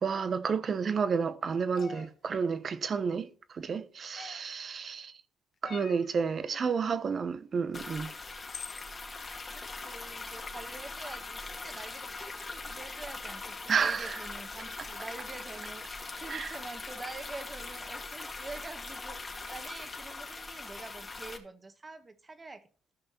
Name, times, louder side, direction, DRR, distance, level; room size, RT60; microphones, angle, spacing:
voice 1, 0.0-5.1 5.6-8.1 13.7-14.2 16.3-16.6, right 5 dB, 50° right, 1.0 m, -31 dB
sound 1, 1.8-2.1 4.2-4.6 5.6-6.1 7.8-7.9 8.5-8.9, left 6 dB, 50° left, 1.4 m, -44 dB
voice 2, 6.4-7.3 9.5-22.9, right 3 dB, 30° right, 1.7 m, -46 dB
sound 2, 7.7-21.4, left 3 dB, 30° left, 2.3 m, -41 dB
14.0 x 5.7 x 4.4 m
supercardioid pair, 65°, 0 cm